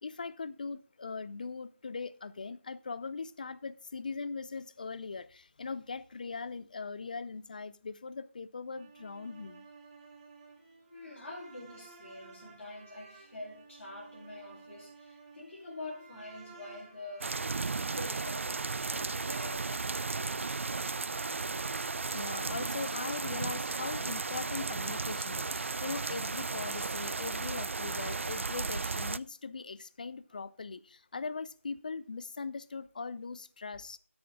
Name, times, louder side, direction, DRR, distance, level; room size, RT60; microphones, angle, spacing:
voice 1, 0.0-9.7 20.2-20.3 22.1-34.0, left 4 dB, 35° left, 0.5 m, -40 dB
sound 1, 8.7-25.9, right 4 dB, 25° right, 2.2 m, -56 dB
voice 2, 10.9-17.4 17.7-21.1, left 2 dB, 60° left, 4.1 m, -46 dB
sound 2, 17.2-29.2, right 4 dB, 65° right, 0.3 m, -35 dB
10.0 x 8.7 x 3.6 m
figure-of-eight pair, 165°, 7 cm